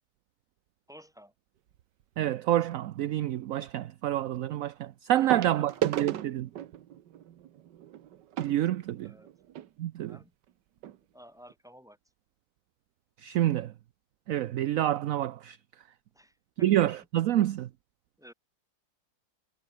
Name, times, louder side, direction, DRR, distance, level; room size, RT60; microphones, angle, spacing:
voice 1, 0.9-1.3 5.2-5.9 9.0-9.3 10.0-10.3 11.1-12.0 16.1-16.9 18.2-18.3, equal, ahead, 7.1 m, -52 dB
sound 1, 1.7-2.0 3.7-3.8 5.3-9.7 10.5-10.6 10.8-11.0 11.5-11.6, right 11 dB, 85° right, 1.6 m, -36 dB
voice 2, 2.2-6.5 8.4-9.1 9.8-10.2 13.2-13.7 14.3-15.6 16.6-17.7, right 13 dB, 65° right, 0.9 m, -28 dB
omnidirectional pair, 1.8 m